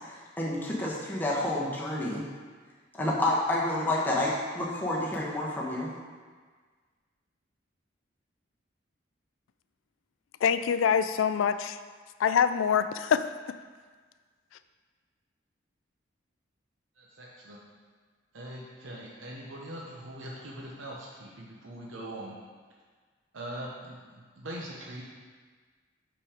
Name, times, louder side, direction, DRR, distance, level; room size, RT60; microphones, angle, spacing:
voice 1, 0.0-2.2 2.9-5.9, left 1 dB, 10° left, -5 dB, 1.2 m, -29 dB
voice 2, 10.4-11.8 12.2-13.3, left 7 dB, 90° left, 12 dB, 0.3 m, -25 dB
voice 3, 17.0-17.6 18.3-22.3 23.3-25.0, right 1 dB, 80° right, -3 dB, 0.9 m, -42 dB
5.4 x 5.2 x 5.0 m, 1.5 s
head